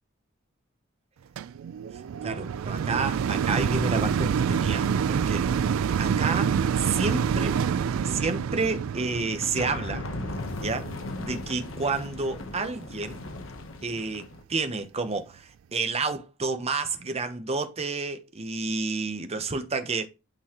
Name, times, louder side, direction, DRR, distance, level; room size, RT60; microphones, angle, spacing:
sound 1, 1.4-12.6 13.2-13.3, right 7 dB, 85° right, 0.3 m, -27 dB
voice 1, 2.2-5.5 6.0-7.6 8.0-10.0 10.6-10.9 11.2-13.2 13.8-20.1, right 3 dB, 30° right, 0.8 m, -30 dB
sound 2, 9.4-14.4, left 2 dB, 75° left, 0.9 m, -37 dB
8.9 x 3.9 x 2.9 m
head